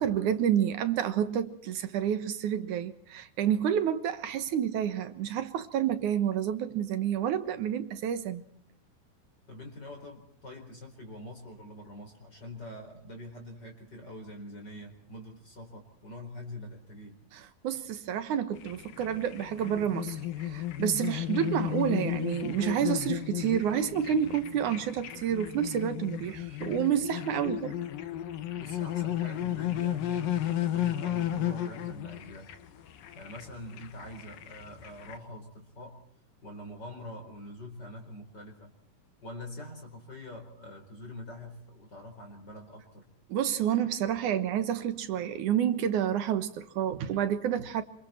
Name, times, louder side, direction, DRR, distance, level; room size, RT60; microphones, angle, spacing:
voice 1, 0.0-8.4 17.3-27.8 43.3-47.8, right 9 dB, 70° right, 2.6 m, -29 dB
voice 2, 9.5-17.2 28.5-32.5 33.1-36.0 36.4-38.7 39.2-43.1, left 1 dB, 30° left, 4.9 m, -44 dB
sound 1, 18.5-35.2, left 12 dB, 90° left, 3.1 m, -34 dB
27.0 x 27.0 x 4.4 m
omnidirectional pair, 3.9 m